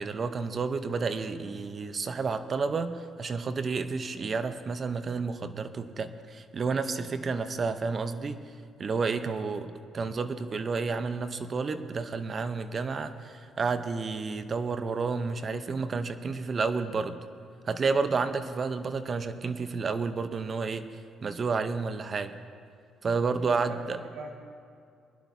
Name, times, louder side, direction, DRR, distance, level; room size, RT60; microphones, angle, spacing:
voice 1, 0.0-8.4 8.8-9.7 9.9-17.2 17.7-20.9 21.2-22.3 23.0-24.0, right 4 dB, 40° right, 10 dB, 0.8 m, -30 dB
voice 2, 23.4-23.9 24.1-24.4, right 4 dB, 90° right, 1 dB, 1.6 m, -43 dB
21.5 x 11.0 x 2.7 m, 2.3 s
cardioid pair, 85°, 0 cm